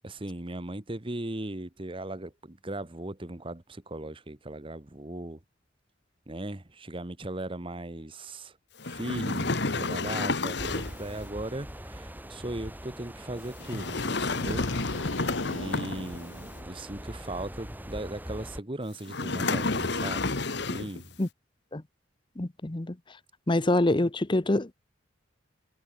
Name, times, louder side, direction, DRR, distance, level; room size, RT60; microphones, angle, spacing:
voice 1, 0.0-5.4 6.3-8.5 8.9-14.7 15.4-20.3 20.6-21.1, right 1 dB, 25° right, 1.3 m, -38 dB
sound 1, 8.8-11.1 13.6-16.3 19.1-21.0, left 3 dB, 60° left, 1.7 m, -30 dB
sound 2, 10.6-18.6, equal, 10° right, 6.4 m, -43 dB
sound 3, 14.4-16.8, left 2 dB, 85° left, 2.3 m, -36 dB
voice 2, 22.4-22.9 23.5-24.7, left 1 dB, 25° left, 0.8 m, -25 dB
head